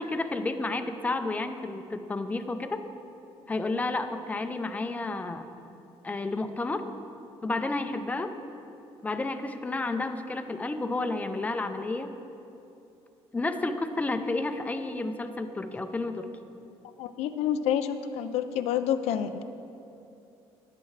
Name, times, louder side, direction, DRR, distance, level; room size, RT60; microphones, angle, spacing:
voice 1, 0.0-2.8 3.5-5.4 6.0-6.8 7.4-8.3 9.0-12.1 13.3-16.3, left 2 dB, 15° left, 7 dB, 0.6 m, -31 dB
voice 2, 17.0-19.4, left 9 dB, 90° left, 10 dB, 0.5 m, -28 dB
20.0 x 7.7 x 3.2 m, 2.8 s
cardioid pair, 130°, 11 cm